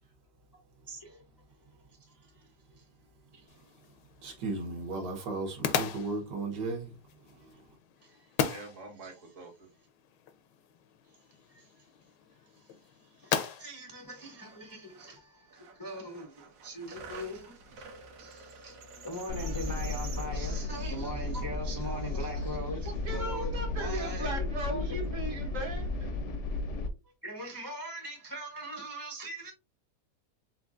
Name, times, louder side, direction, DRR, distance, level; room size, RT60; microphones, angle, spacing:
voice 1, 0.9-1.2 1.9-2.5 2.8-2.9 3.3-3.5 8.0-8.5 9.0-9.5 11.5-11.8 12.5-25.3 27.2-29.5, equal, 35° left, 0.3 m, -42 dB
sound 1, 3.5-15.2, left 8 dB, 80° left, 1.3 m, -38 dB
voice 2, 4.2-6.9 7.5-7.6, right 3 dB, 75° right, 1.8 m, -35 dB
voice 3, 8.5-9.5 22.8-26.1, right 2 dB, 50° right, 1.6 m, -38 dB
sound 2, 14.1-14.2 14.3-15.1 15.5-20.6, right 4 dB, 90° right, 1.6 m, -48 dB
sound 3, 19.3-26.9, left 2 dB, 60° left, 0.8 m, -34 dB
4.4 x 3.8 x 2.5 m
omnidirectional pair, 1.9 m